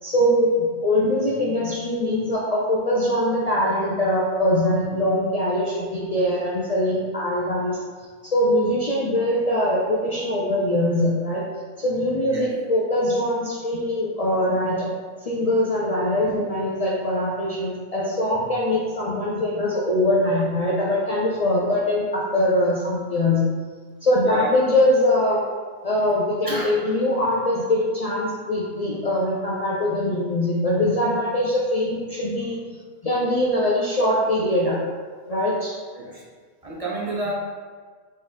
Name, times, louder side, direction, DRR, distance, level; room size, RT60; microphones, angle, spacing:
voice 1, 0.0-7.8 8.2-11.4 11.8-14.9 15.2-23.4 24.0-25.4 25.8-32.6 33.0-34.8 35.3-35.8, left 1 dB, 45° left, -5 dB, 0.5 m, -22 dB
voice 2, 26.4-26.8 35.9-36.2 36.6-37.3, right 2 dB, 35° right, -5 dB, 0.9 m, -29 dB
3.9 x 3.2 x 3.9 m, 1.6 s
omnidirectional pair, 1.1 m